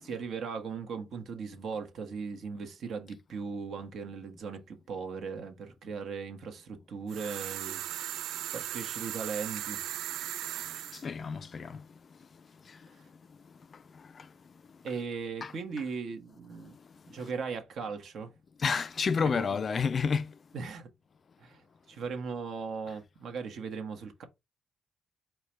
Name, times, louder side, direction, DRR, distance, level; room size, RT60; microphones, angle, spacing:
voice 1, 0.0-8.1 8.5-9.8 14.8-16.7 17.1-18.3 19.3-19.5 20.5-20.9 21.4-24.2, right 5 dB, 65° right, 1.2 m, -38 dB
sound 1, 7.1-11.0, right 12 dB, 85° right, 0.3 m, -37 dB
voice 2, 10.9-11.8 14.2-14.3 15.4-15.5 18.6-20.3, left 5 dB, 45° left, 0.4 m, -29 dB
4.6 x 2.3 x 4.2 m
cardioid pair, 90°, 0 cm